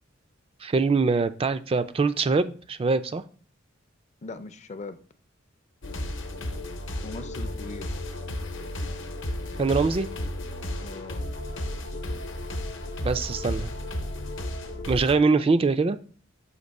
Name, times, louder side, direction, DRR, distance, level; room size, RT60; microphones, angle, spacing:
voice 1, 0.6-3.2 9.6-10.1 13.0-13.7 14.9-16.0, right 4 dB, 30° right, 0.3 m, -23 dB
voice 2, 4.2-5.0 7.0-7.9 10.8-11.3, left 3 dB, 35° left, 0.5 m, -39 dB
sound 1, 5.8-15.1, left 1 dB, 70° left, 0.8 m, -33 dB
6.5 x 2.8 x 5.3 m
head